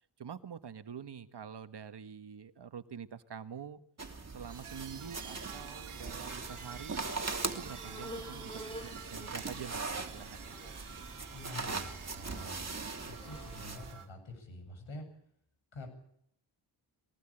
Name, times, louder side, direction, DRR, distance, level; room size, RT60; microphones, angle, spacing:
voice 1, 0.2-3.8 4.3-7.0 7.5-10.6, right 7 dB, 55° right, 11 dB, 1.4 m, -46 dB
sound 1, 4.0-13.9, right 4 dB, 30° right, 3.0 m, -41 dB
sound 2, 4.4-14.1, right 7 dB, 80° right, 2.2 m, -49 dB
sound 3, 5.0-13.7, equal, 10° left, 6.1 m, -51 dB
voice 2, 11.3-15.1 15.7-15.9, left 2 dB, 65° left, 6 dB, 7.9 m, -47 dB
22.0 x 18.5 x 8.9 m, 0.71 s
cardioid pair, 75°, 49 cm